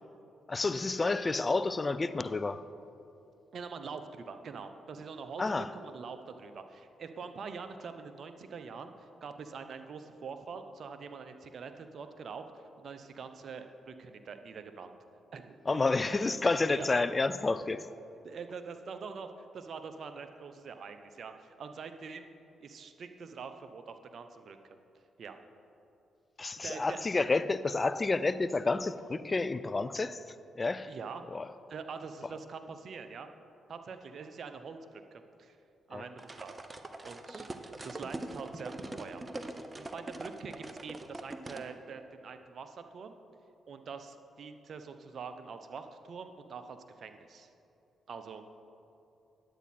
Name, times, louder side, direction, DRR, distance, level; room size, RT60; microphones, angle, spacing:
voice 1, 0.5-2.6 5.4-5.7 15.7-17.9 26.4-30.2 30.6-30.9 31.3-31.5 35.9-36.1, left 3 dB, 35° left, 0.4 m, -30 dB
voice 2, 3.5-5.4 5.7-15.0 15.3-15.6 16.7-16.9 18.2-22.3 22.6-24.8 25.2-25.4 26.6-27.1 30.9-31.2 31.7-33.3 33.7-35.6 35.9-36.5 37.0-37.5 37.7-39.2 39.8-43.1 43.7-47.5 48.1-48.4, right 5 dB, 60° right, 0.7 m, -44 dB
sound 1, 36.2-41.7, right 2 dB, 30° right, 0.8 m, -42 dB
10.0 x 8.3 x 4.3 m
supercardioid pair, 50°, 0 cm